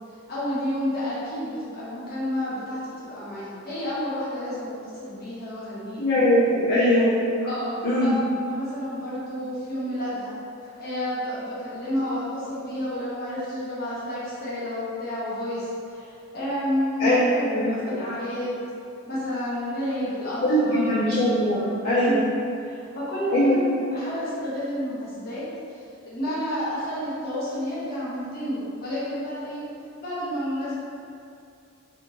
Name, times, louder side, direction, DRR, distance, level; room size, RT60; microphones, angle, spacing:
voice 1, 0.3-6.1 6.7-6.8 7.4-8.2 8.5-10.3 10.6-18.6 19.1-21.7 22.0-22.3 22.6-25.8 26.1-29.6 30.0-30.7, equal, 50° left, -9 dB, 1.0 m, -30 dB
voice 2, 6.0-7.2 7.8-8.2 17.0-17.7 18.0-18.1 20.4-22.3 23.3-23.5, equal, 65° left, -18 dB, 1.4 m, -21 dB
3.4 x 2.8 x 2.8 m, 2.4 s
head